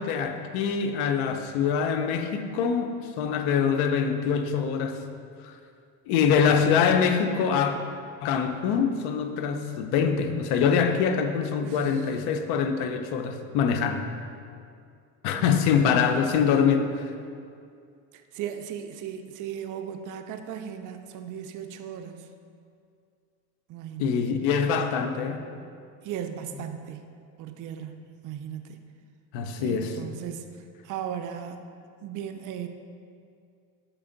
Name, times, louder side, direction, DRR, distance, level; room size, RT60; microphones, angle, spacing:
voice 1, 0.0-5.0 5.4-5.5 6.1-7.8 8.2-14.1 15.2-17.1 24.0-25.4 29.3-30.0, left 6 dB, 70° left, 7 dB, 0.7 m, -24 dB
voice 2, 11.6-12.1 15.4-16.1 18.1-22.3 23.7-24.3 26.0-27.1 27.4-28.9 29.6-31.6 32.0-32.7, right 9 dB, 50° right, 7 dB, 0.5 m, -37 dB
6.2 x 4.4 x 3.8 m, 2.4 s
supercardioid pair, 105°, 40 cm